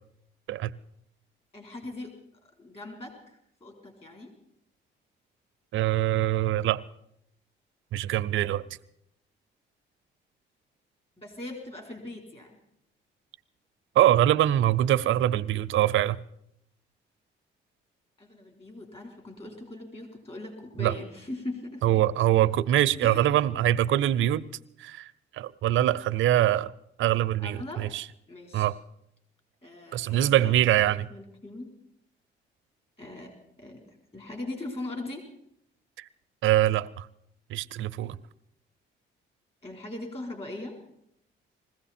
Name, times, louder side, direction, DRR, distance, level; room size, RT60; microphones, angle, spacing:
voice 1, 1.5-2.1 2.6-4.3 11.2-12.6 18.2-21.9 23.0-23.4 27.4-27.8 28.3-28.7 29.6-30.7 31.0-31.7 33.0-33.3 33.6-35.2 39.6-40.8, left 2 dB, 30° left, 4.2 m, -40 dB
voice 2, 5.7-6.8 7.9-8.6 14.0-16.2 20.8-20.9 21.8-24.4 24.8-25.1 25.3-26.7 27.0-28.0 28.5-28.7 29.9-31.1 36.0-36.1 36.4-37.1 37.5-38.2, right 13 dB, 80° right, 0.6 m, -23 dB
20.5 x 15.5 x 4.3 m
cardioid pair, 90°, 20 cm